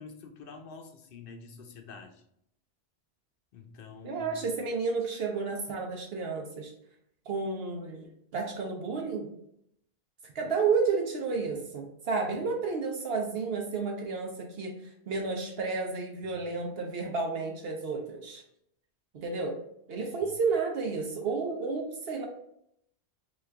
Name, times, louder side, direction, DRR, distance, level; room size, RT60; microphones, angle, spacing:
voice 1, 0.0-2.2 3.5-4.3 16.2-16.4 20.2-20.3, left 4 dB, 60° left, 5 dB, 0.7 m, -47 dB
voice 2, 4.0-6.7 7.3-9.3 10.2-18.4 19.1-19.6 19.9-22.3, right 4 dB, 65° right, 1 dB, 0.8 m, -31 dB
4.1 x 2.4 x 3.2 m, 0.74 s
omnidirectional pair, 1.2 m